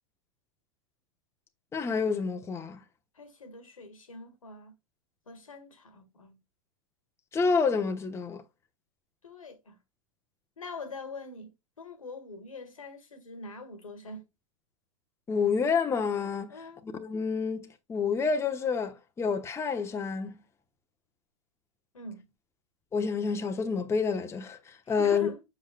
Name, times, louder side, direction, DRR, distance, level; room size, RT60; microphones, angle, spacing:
voice 1, 1.7-2.8 7.3-8.4 15.3-16.5 16.8-20.3 22.9-25.3, left 5 dB, 15° left, 1.0 m, -28 dB
voice 2, 3.2-4.8 5.3-6.4 9.2-9.8 10.6-14.3 16.5-16.8 21.9-22.3 24.8-25.4, left 3 dB, 80° left, 1.8 m, -44 dB
7.3 x 6.4 x 2.4 m
figure-of-eight pair, 100°, 17 cm